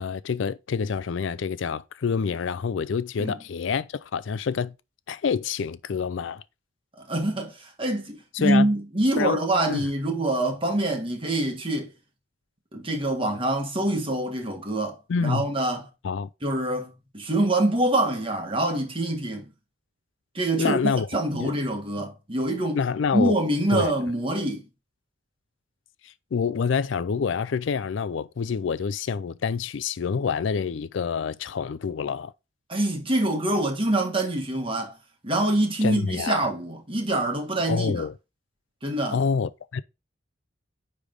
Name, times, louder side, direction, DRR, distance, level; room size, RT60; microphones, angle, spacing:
voice 1, 0.0-4.7 5.1-6.4 8.3-8.7 9.2-9.4 9.7-9.9 15.1-15.5 16.0-16.3 20.6-21.1 21.4-21.5 22.7-23.3 23.7-23.9 26.0-32.3 35.8-36.5 37.7-38.1 39.1-39.8, left 6 dB, 65° left, 0.4 m, -27 dB
voice 2, 7.0-11.9 12.7-15.9 16.4-19.5 20.3-22.8 23.1-24.6 32.7-34.9 35.2-38.1 38.8-39.2, right 1 dB, 25° right, 1.5 m, -25 dB
9.8 x 3.4 x 3.8 m
head